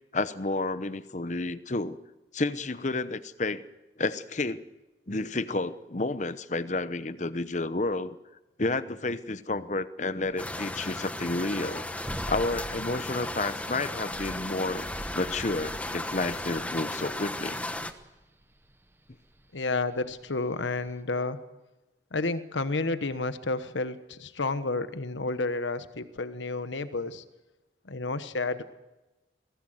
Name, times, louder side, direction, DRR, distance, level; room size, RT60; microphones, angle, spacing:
voice 1, 0.1-2.0 2.3-3.6 4.0-4.6 5.1-8.2 8.6-11.8 12.3-14.9 15.1-17.6, left 2 dB, 40° left, 14 dB, 0.9 m, -30 dB
sound 1, 10.2-21.0, equal, 10° right, 1.0 m, -44 dB
sound 2, 10.4-17.9, left 1 dB, 10° left, 1.0 m, -35 dB
voice 2, 19.5-21.4 22.1-27.2 27.9-28.6, left 3 dB, 90° left, 12 dB, 1.2 m, -31 dB
23.0 x 17.5 x 7.9 m, 1.1 s
head